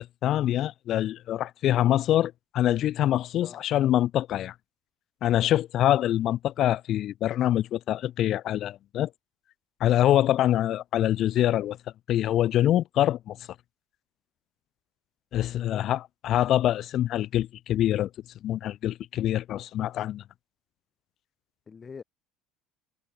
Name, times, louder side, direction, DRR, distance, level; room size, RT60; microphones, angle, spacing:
voice 1, 0.0-4.5 5.2-9.1 9.8-11.8 12.1-13.4 15.3-18.1 18.4-20.2, left 12 dB, 50° left, 2.0 m, -25 dB
voice 2, 21.7-22.0, left 5 dB, 25° left, 3.6 m, -44 dB
cardioid pair, 125°, 0 cm